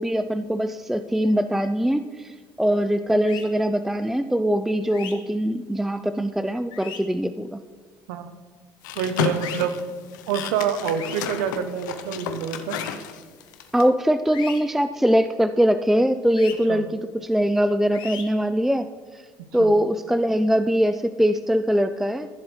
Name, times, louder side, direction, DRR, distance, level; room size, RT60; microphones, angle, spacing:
voice 1, 0.0-7.6 13.7-18.9 19.5-22.3, equal, 5° right, 10 dB, 0.3 m, -22 dB
sound 1, 3.3-3.5 4.9-5.1 6.7-7.0 9.4-9.6 11.0-11.2 12.7-12.9 14.3-14.6 16.4-16.5 17.9-18.2, left 8 dB, 60° left, 1.3 m, -36 dB
sound 2, 8.8-13.8, left 8 dB, 90° left, 0.6 m, -31 dB
voice 2, 9.0-9.8 10.3-12.8 16.7-16.8 19.6-19.7, right 8 dB, 80° right, 10 dB, 0.8 m, -27 dB
14.5 x 7.3 x 3.2 m, 1.5 s
hypercardioid pair, 75°, 10 cm